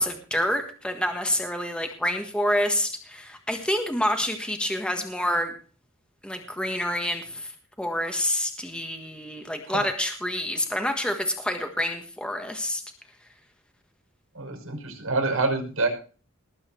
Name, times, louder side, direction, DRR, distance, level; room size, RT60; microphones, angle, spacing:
voice 1, 0.0-5.5 6.2-7.5 7.8-12.8, left 1 dB, 5° left, 5 dB, 1.4 m, -27 dB
voice 2, 14.3-15.9, right 3 dB, 85° right, 4 dB, 5.8 m, -26 dB
19.5 x 8.4 x 4.4 m, 0.38 s
head